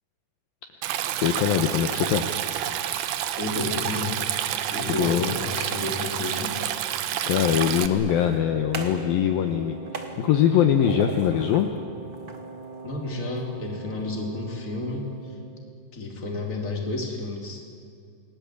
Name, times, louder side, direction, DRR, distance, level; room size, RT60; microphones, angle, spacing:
Stream, 0.8-7.9, right 11 dB, 70° right, 2.7 m, -29 dB
voice 1, 1.2-2.3 5.0-5.3 7.3-11.7, left 9 dB, 70° left, 5 dB, 2.6 m, -22 dB
voice 2, 3.4-4.2 4.7-6.6 12.8-15.3 15.9-17.6, left 2 dB, 20° left, 1 dB, 3.2 m, -31 dB
sound 1, 5.4-6.8 7.9-9.1 9.4-11.7 12.1-13.5, right 3 dB, 45° right, 1.1 m, -40 dB
Wind instrument woodwind instrument, 8.4-15.8, right 3 dB, 20° right, 1.2 m, -42 dB
29.5 x 20.5 x 8.4 m, 2.4 s
omnidirectional pair, 4.8 m